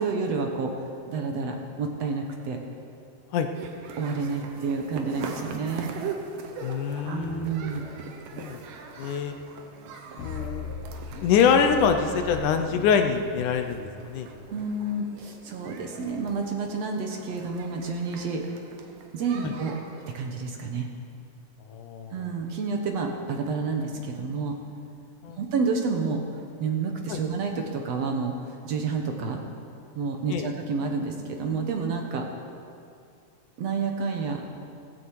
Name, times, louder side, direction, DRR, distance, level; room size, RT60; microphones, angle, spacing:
voice 1, 0.0-2.6 3.9-5.9 7.1-7.9 14.5-18.4 19.1-19.8 20.1-20.9 22.1-24.6 25.4-26.2 26.6-29.4 30.0-32.3 33.6-34.4, right 4 dB, 60° right, 2 dB, 2.1 m, -29 dB
sound 1, 3.5-20.3, right 5 dB, 85° right, 2.8 m, -42 dB
voice 2, 6.6-7.5 8.3-8.6 9.0-9.4 10.2-10.7 11.2-14.3 19.4-19.5 21.7-22.2 25.2-25.4 27.1-27.2 30.3-30.5, left 6 dB, 75° left, 6 dB, 2.3 m, -25 dB
sound 2, 10.2-14.3, left 4 dB, 55° left, 1.9 m, -39 dB
16.5 x 15.5 x 4.8 m, 2.4 s
omnidirectional pair, 3.7 m